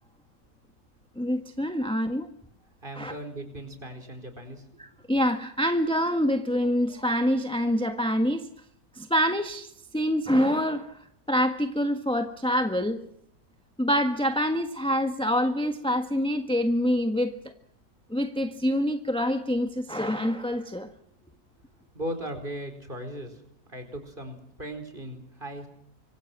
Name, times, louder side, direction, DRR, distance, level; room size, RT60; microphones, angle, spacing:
voice 1, 1.1-2.3 3.0-3.1 4.8-8.5 8.9-11.0 11.3-13.0 13.8-17.5 18.1-20.9, equal, 5° left, 7 dB, 1.3 m, -26 dB
voice 2, 2.8-4.6 21.9-23.4 23.7-25.7, right 1 dB, 30° right, 7 dB, 4.8 m, -37 dB
26.0 x 24.5 x 6.1 m, 0.72 s
omnidirectional pair, 1.6 m